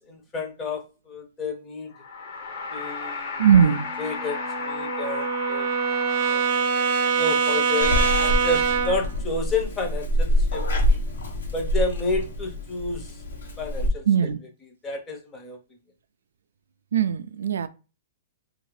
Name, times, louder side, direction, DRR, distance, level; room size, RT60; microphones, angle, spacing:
voice 1, 0.1-1.9 2.7-3.4 4.0-5.7 6.3-6.5 7.2-11.0 11.5-13.2 13.6-15.6, left 3 dB, 15° left, 0.7 m, -31 dB
sound 1, 1.9-7.0, left 4 dB, 55° left, 0.8 m, -34 dB
voice 2, 3.4-3.9 14.1-14.4 16.9-17.7, right 7 dB, 90° right, 0.3 m, -19 dB
Brass instrument, 3.5-9.1, right 6 dB, 35° right, 0.7 m, -24 dB
Purr / Meow, 7.8-13.9, equal, 80° left, 1.0 m, -26 dB
2.7 x 2.4 x 3.2 m
hypercardioid pair, 155°, 0 cm